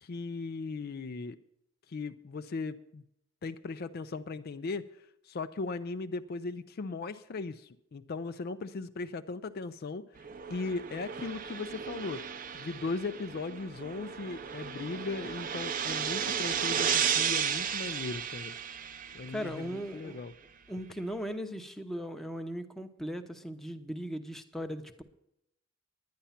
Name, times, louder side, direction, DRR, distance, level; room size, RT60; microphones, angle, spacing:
voice 1, 0.0-1.4 1.9-3.0 3.4-10.0 10.5-12.3 12.6-18.6 19.1-20.3, left 3 dB, 50° left, 10 dB, 0.4 m, -38 dB
sound 1, 10.2-19.7, right 8 dB, 45° right, 0.6 m, -34 dB
voice 2, 19.3-20.2 20.7-25.0, equal, ahead, 5 dB, 0.8 m, -38 dB
10.5 x 10.0 x 5.7 m, 0.81 s
head